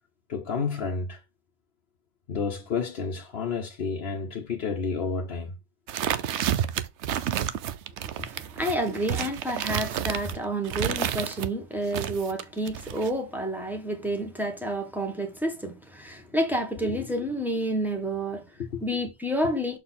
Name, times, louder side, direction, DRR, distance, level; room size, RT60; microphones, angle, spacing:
voice 1, 0.3-1.2 2.3-5.6 16.8-17.1 18.6-18.8, left 5 dB, 60° left, 1.1 m, -30 dB
sound 1, 5.9-11.5 11.9-13.1, right 10 dB, 75° right, 0.9 m, -30 dB
voice 2, 8.0-18.4 18.8-19.8, right 1 dB, ahead, 1.4 m, -29 dB
6.8 x 4.2 x 3.9 m
omnidirectional pair, 1.2 m